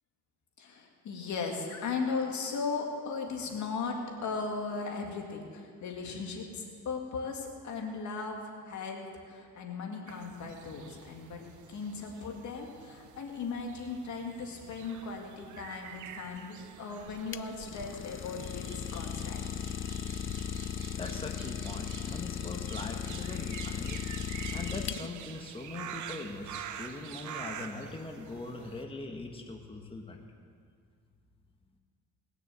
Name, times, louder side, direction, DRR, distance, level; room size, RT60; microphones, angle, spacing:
voice 1, 0.6-11.4 11.7-19.4, left 4 dB, 70° left, 2 dB, 2.2 m, -37 dB
sound 1, 10.1-28.8, right 9 dB, 75° right, 0.9 m, -47 dB
Idling, 17.0-25.4, left 9 dB, 45° left, 0.6 m, -37 dB
voice 2, 21.0-30.3, left 3 dB, 20° left, 2 dB, 1.4 m, -41 dB
19.5 x 6.7 x 7.7 m, 2.1 s
cardioid pair, 90°, 30 cm